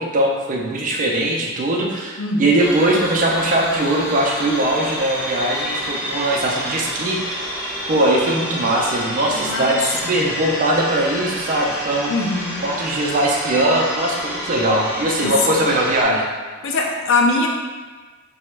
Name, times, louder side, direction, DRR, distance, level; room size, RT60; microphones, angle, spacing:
voice 1, 0.0-7.6 7.9-12.1 12.6-16.3, right 1 dB, 40° right, -1 dB, 0.4 m, -20 dB
voice 2, 2.2-2.6 9.3-9.8 10.0-10.3 12.1-12.6 15.2-15.6 16.6-17.5, left 3 dB, 65° left, 1 dB, 0.4 m, -22 dB
sound 1, 2.6-16.0, equal, 5° right, 1.2 m, -29 dB
2.9 x 2.2 x 3.2 m, 1.4 s
head